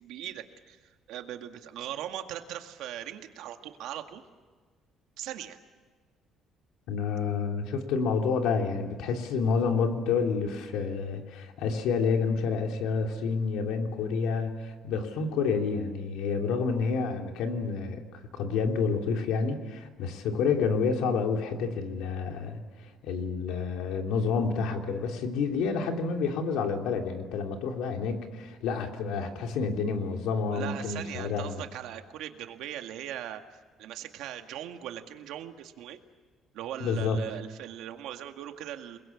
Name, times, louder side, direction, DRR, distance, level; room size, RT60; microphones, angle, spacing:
voice 1, 0.0-4.2 5.2-5.6 30.5-36.0 36.5-39.0, right 11 dB, 80° right, 6 dB, 2.0 m, -40 dB
voice 2, 6.9-31.6 36.8-37.2, left 5 dB, 85° left, 3 dB, 3.1 m, -29 dB
29.0 x 21.5 x 8.6 m, 1.4 s
cardioid pair, 165°, 0 cm